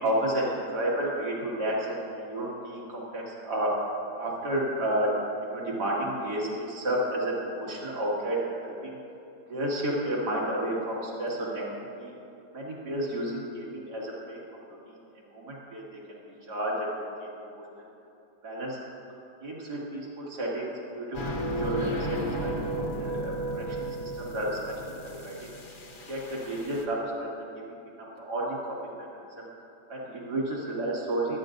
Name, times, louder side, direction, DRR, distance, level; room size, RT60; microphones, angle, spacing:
voice 1, 0.0-3.7 4.2-5.1 5.4-8.9 9.5-11.6 12.0-12.1 12.5-14.4 14.9-15.0 15.3-16.9 17.2-17.3 17.5-17.7 18.4-18.8 19.4-24.8 25.0-25.4 26.1-27.3 27.6-29.1 29.4-29.5 29.9-31.4, right 1 dB, 65° right, -5 dB, 2.8 m, -31 dB
sound 1, 21.1-26.8, right 1 dB, 35° left, 0.9 m, -33 dB
24.0 x 9.6 x 2.6 m, 2.9 s
omnidirectional pair, 1.9 m